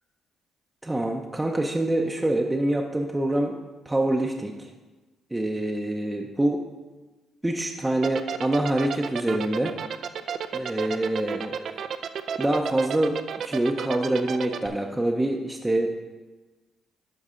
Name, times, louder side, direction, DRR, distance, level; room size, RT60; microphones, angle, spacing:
voice 1, 0.8-3.6 3.9-4.7 5.3-6.6 7.4-9.7 10.5-11.8 12.4-13.2 13.4-15.9, right 1 dB, 10° right, 1 dB, 0.6 m, -25 dB
sound 1, 8.0-14.7, right 7 dB, 60° right, 0.4 m, -31 dB
12.0 x 4.7 x 3.7 m, 1.2 s
cardioid pair, 90°, 0 cm